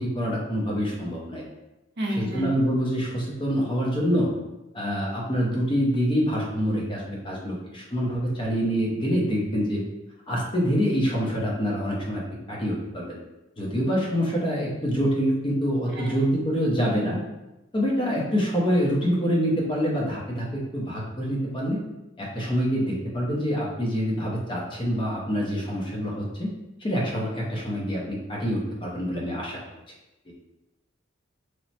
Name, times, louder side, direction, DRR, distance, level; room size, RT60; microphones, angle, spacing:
voice 1, 0.0-1.4 2.2-4.3 4.7-9.8 10.3-12.2 12.5-13.2 13.6-17.2 17.7-21.8 22.2-26.5 26.8-29.6 30.3-30.4, equal, 25° left, -3 dB, 0.6 m, -26 dB
voice 2, 2.0-2.6 15.9-16.1, equal, 60° right, -1 dB, 0.5 m, -30 dB
3.1 x 2.0 x 2.7 m, 0.98 s
head